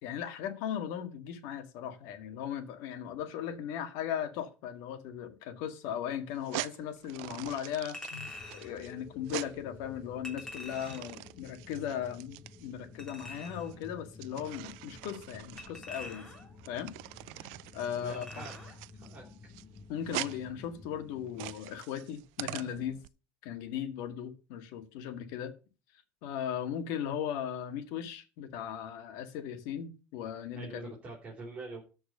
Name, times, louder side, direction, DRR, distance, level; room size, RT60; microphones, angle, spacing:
voice 1, 0.0-16.3 16.7-16.9 17.7-18.2 19.9-23.0 23.4-25.5 26.2-30.9, left 9 dB, 70° left, 1.9 m, -37 dB
sound 1, 6.3-23.1, right 21 dB, 80° right, 0.5 m, -44 dB
Chink clink, 7.9-8.7 10.2-11.2 13.0-13.7 15.6-16.6 18.1-18.8 19.1-19.3, left 2 dB, 10° left, 3.4 m, -45 dB
sound 2, 8.1-21.6, left 4 dB, 35° left, 1.6 m, -52 dB
voice 2, 17.9-18.5 19.0-19.2 30.5-31.8, right 3 dB, 25° right, 4.0 m, -44 dB
13.5 x 4.7 x 6.6 m
cardioid pair, 150°, 6 cm